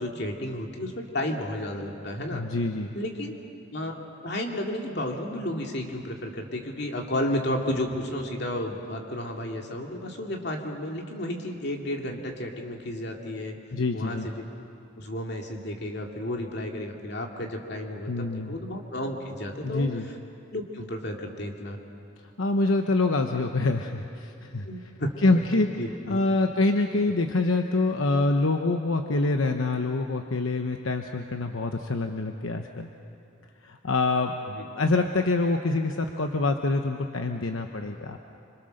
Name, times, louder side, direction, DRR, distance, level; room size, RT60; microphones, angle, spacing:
voice 1, 0.0-2.5 2.9-3.3 3.7-3.9 4.2-13.5 13.9-14.4 15.0-20.1 20.5-21.8 24.6-25.4 25.8-26.2 34.5-34.6, left 1 dB, 55° left, 1 dB, 2.5 m, -32 dB
voice 2, 2.3-2.9 13.7-14.3 18.1-18.5 19.6-20.0 22.4-24.7 25.2-25.7 26.1-32.9 33.6-34.4 34.7-38.2, left 2 dB, 80° left, 5 dB, 1.0 m, -25 dB
26.5 x 26.0 x 6.6 m, 2.6 s
head